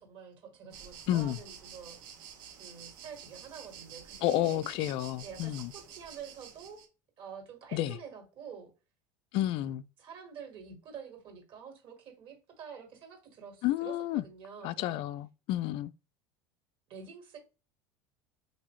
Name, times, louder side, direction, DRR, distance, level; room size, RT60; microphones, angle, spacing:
voice 1, 0.0-2.0 2.5-4.6 5.2-6.8 7.2-8.7 10.0-15.0 16.9-17.4, right 6 dB, 55° right, 1.7 m, -48 dB
sound 1, 0.7-6.9, right 8 dB, 80° right, 0.9 m, -49 dB
voice 2, 1.1-1.4 4.2-5.7 7.7-8.0 9.3-9.8 13.6-14.2 14.6-15.9, left 13 dB, 55° left, 0.3 m, -30 dB
3.3 x 2.7 x 3.1 m
hypercardioid pair, 90°, 11 cm